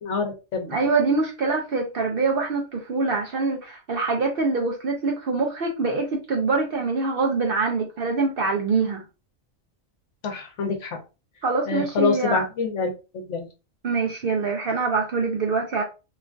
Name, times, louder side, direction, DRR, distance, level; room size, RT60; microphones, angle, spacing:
voice 1, 0.0-0.7 10.2-11.0 11.7-13.5, left 4 dB, 65° left, 1.0 m, -26 dB
voice 2, 0.7-9.0 11.4-12.4 13.8-15.8, right 4 dB, 60° right, 0.6 m, -24 dB
3.1 x 2.4 x 2.3 m
omnidirectional pair, 1.4 m